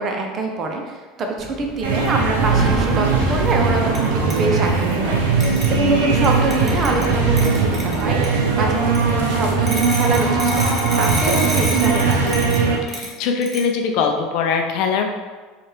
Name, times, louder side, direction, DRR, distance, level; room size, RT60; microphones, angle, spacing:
voice 1, 0.0-12.3, right 3 dB, 45° right, 2 dB, 0.7 m, -24 dB
Wind, 1.4-8.7, right 1 dB, 10° left, 0.7 m, -30 dB
sound 1, 1.8-12.8, right 4 dB, 90° right, 0.5 m, -19 dB
sound 2, 3.9-4.1 4.3-4.4 5.4-5.8 6.2-8.3 8.9-9.0 9.7-13.1 13.4-13.6, right 1 dB, 25° right, 1.0 m, -29 dB
voice 2, 12.8-15.1, left 5 dB, 65° left, 3 dB, 0.5 m, -21 dB
4.2 x 2.4 x 3.3 m, 1.4 s
supercardioid pair, 90°, 0 cm